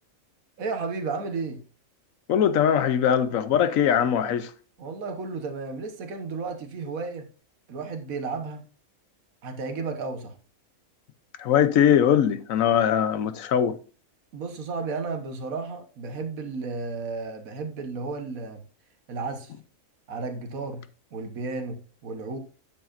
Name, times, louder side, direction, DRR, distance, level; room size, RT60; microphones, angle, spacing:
voice 1, 0.6-1.6 4.8-7.3 7.7-8.6 9.4-10.4 14.3-18.6 19.1-19.5 20.1-20.8 21.1-22.4, right 4 dB, 90° right, 1.6 m, -33 dB
voice 2, 2.3-4.5 11.4-13.8, left 9 dB, 80° left, 1.1 m, -21 dB
9.2 x 7.6 x 2.5 m
omnidirectional pair, 1.4 m